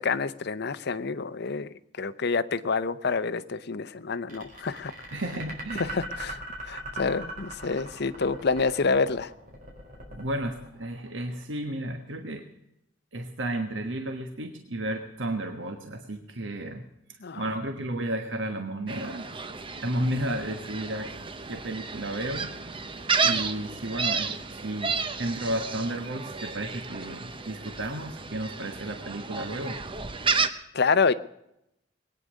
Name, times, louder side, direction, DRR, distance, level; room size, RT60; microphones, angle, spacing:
voice 1, 0.0-4.9 5.7-6.4 6.6-9.3 17.2-17.4 30.7-31.1, left 4 dB, 60° left, 13 dB, 0.7 m, -27 dB
sound 1, 4.3-11.4, right 1 dB, 45° right, 4.2 m, -39 dB
voice 2, 5.1-5.9 10.1-12.4 13.1-16.8 17.4-19.3 19.8-21.1 21.5-22.5 23.2-29.8, right 1 dB, 70° right, 5 dB, 1.3 m, -33 dB
Gull seagull, 18.9-30.5, right 5 dB, 25° right, 0.9 m, -32 dB
21.5 x 9.6 x 6.4 m, 0.82 s
head